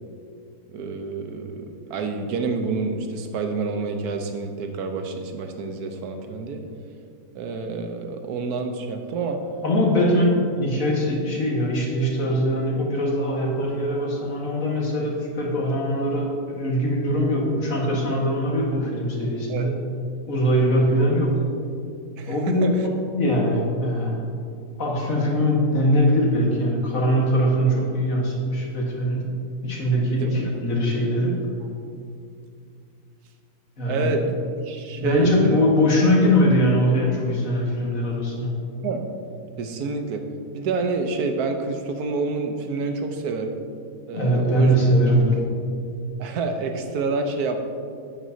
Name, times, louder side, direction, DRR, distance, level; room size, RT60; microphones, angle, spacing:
voice 1, 0.7-6.6 7.3-9.4 9.9-10.2 19.5-19.7 22.2-22.9 30.2-30.4 33.9-34.3 34.6-35.6 38.8-39.0 39.6-40.2 40.5-43.5 44.1-44.7 46.2-47.6, right 4 dB, 90° right, 5 dB, 1.3 m, -28 dB
voice 2, 9.6-10.3 10.6-19.7 20.3-21.4 22.3-22.8 23.1-24.2 24.8-29.3 29.6-31.4 33.8-34.1 35.0-38.6 44.1-45.4, equal, 60° left, -2 dB, 1.9 m, -21 dB
11.0 x 9.2 x 2.7 m, 2.4 s
omnidirectional pair, 1.6 m